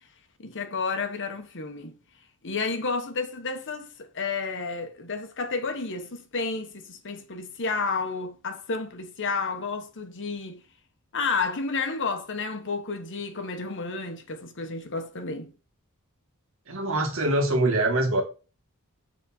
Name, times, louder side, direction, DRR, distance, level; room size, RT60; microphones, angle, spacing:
voice 1, 0.4-1.9 2.4-10.6 11.1-15.5, left 4 dB, 55° left, 1.2 m, -31 dB
voice 2, 16.7-18.2, right 1 dB, 65° right, 1.8 m, -24 dB
7.2 x 4.2 x 4.3 m
head